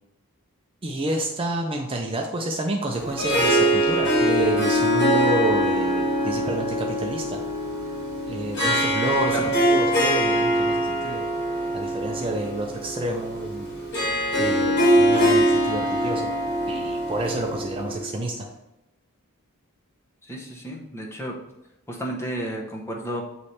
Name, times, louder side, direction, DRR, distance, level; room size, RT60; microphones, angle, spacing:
voice 1, 0.8-7.4 8.3-11.2 11.7-13.7 14.3-16.3 16.7-18.5, right 1 dB, 25° right, 1 dB, 0.5 m, -29 dB
Harp, 2.9-18.2, equal, 50° left, 1.8 m, -23 dB
voice 2, 20.2-21.4 21.9-23.2, right 1 dB, 10° left, -1 dB, 0.9 m, -32 dB
8.0 x 3.2 x 4.2 m, 0.91 s
head